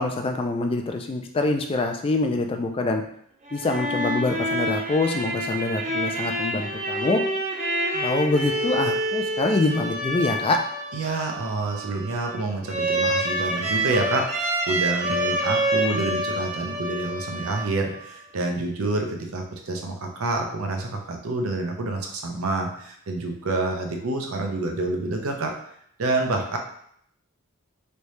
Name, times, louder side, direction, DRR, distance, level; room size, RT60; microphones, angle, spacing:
voice 1, 0.0-3.0 3.5-7.2 7.9-10.6, left 2 dB, 25° left, 4 dB, 0.3 m, -25 dB
sound 1, 3.5-18.1, right 1 dB, 35° right, 0.5 m, -27 dB
voice 2, 10.9-25.5 26.0-26.6, right 2 dB, 85° right, 3 dB, 0.6 m, -28 dB
3.2 x 2.7 x 3.1 m, 0.67 s
head